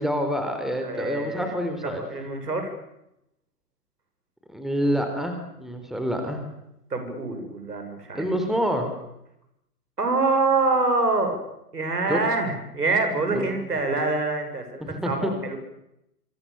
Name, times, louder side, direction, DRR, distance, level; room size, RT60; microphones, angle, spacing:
voice 1, 0.0-2.0 4.5-6.4 8.1-8.9 12.1-12.2 13.3-13.5 14.8-15.3, equal, ahead, 5 dB, 3.9 m, -27 dB
voice 2, 0.8-1.5 1.8-2.7 6.9-8.2 10.0-11.4 11.7-15.6, right 3 dB, 75° right, 6 dB, 7.7 m, -25 dB
26.5 x 26.5 x 7.1 m, 0.84 s
figure-of-eight pair, 115°, 47 cm